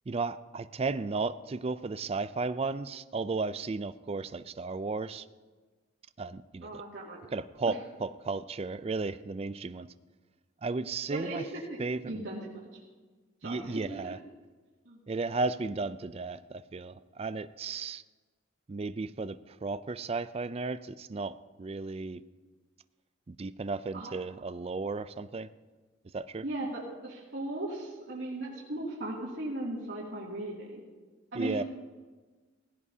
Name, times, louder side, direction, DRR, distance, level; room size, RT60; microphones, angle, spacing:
voice 1, 0.1-5.2 6.2-6.8 7.3-9.9 10.6-11.4 11.8-12.2 13.4-14.2 15.1-18.0 18.7-22.2 23.3-25.5 26.1-26.4 31.3-31.6, right 3 dB, 30° right, 13 dB, 0.4 m, -34 dB
voice 2, 6.6-7.3 7.7-7.8 11.1-11.4 11.7-11.8 12.0-12.7 13.4-14.1 14.9-15.0 23.9-24.1 26.4-30.8 31.3-31.6, right 1 dB, 80° right, -6 dB, 2.5 m, -37 dB
17.5 x 15.5 x 2.8 m, 1.3 s
head